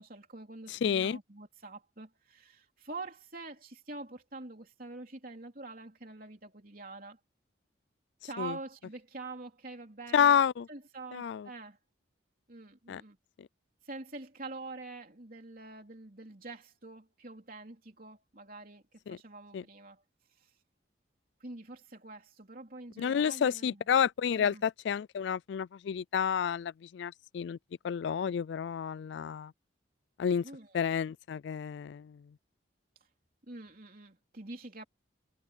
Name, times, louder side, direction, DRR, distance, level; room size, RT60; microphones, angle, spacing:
voice 1, 0.0-7.2 8.2-10.4 10.7-11.8 12.5-13.2 13.8-20.0 20.3-20.5 21.4-23.8 24.3-24.6 30.4-30.8 33.5-34.8, right 3 dB, 45° right, 3.5 m, -46 dB
voice 2, 0.7-1.2 8.4-8.5 10.1-10.7 11.1-11.5 12.9-13.0 13.4-13.5 19.1-19.2 19.5-19.6 23.0-27.6 27.8-29.5 30.2-30.4 30.7-32.2, left 7 dB, 60° left, 0.3 m, -30 dB
head